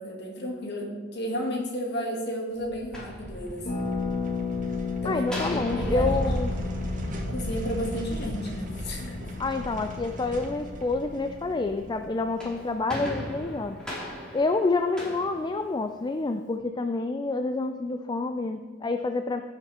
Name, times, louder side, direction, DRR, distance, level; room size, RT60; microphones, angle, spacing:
voice 1, 0.0-3.9 5.0-6.1 7.3-9.3, equal, 65° left, 0 dB, 2.2 m, -33 dB
sound 1, 2.6-13.2, equal, 45° right, 1.7 m, -35 dB
sound 2, 2.7-3.9 5.3-7.7 12.1-16.2, equal, 5° left, 2.7 m, -39 dB
Harp, 3.6-13.3 13.5-13.6 13.8-14.1, left 5 dB, 45° left, 2.1 m, -35 dB
voice 2, 5.0-6.6 9.4-13.8 14.3-19.4, left 3 dB, 25° left, 7 dB, 0.4 m, -28 dB
16.0 x 5.9 x 4.3 m, 1.4 s
head